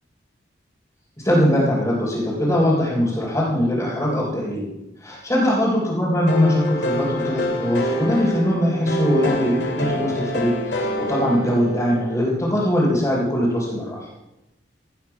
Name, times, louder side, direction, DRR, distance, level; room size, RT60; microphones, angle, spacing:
voice 1, 1.2-4.7 5.0-14.1, equal, 15° left, -7 dB, 3.6 m, -21 dB
sound 1, 6.3-12.2, equal, 75° left, 2.7 m, -26 dB
17.0 x 9.6 x 5.9 m, 0.94 s
head